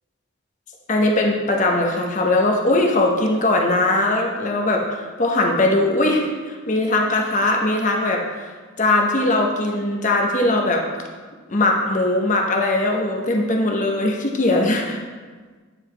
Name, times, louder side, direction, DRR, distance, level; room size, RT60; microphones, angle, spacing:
voice 1, 0.9-8.2 8.8-10.8 11.5-15.0, left 2 dB, 40° left, 0 dB, 0.8 m, -20 dB
9.0 x 4.8 x 3.3 m, 1.4 s
head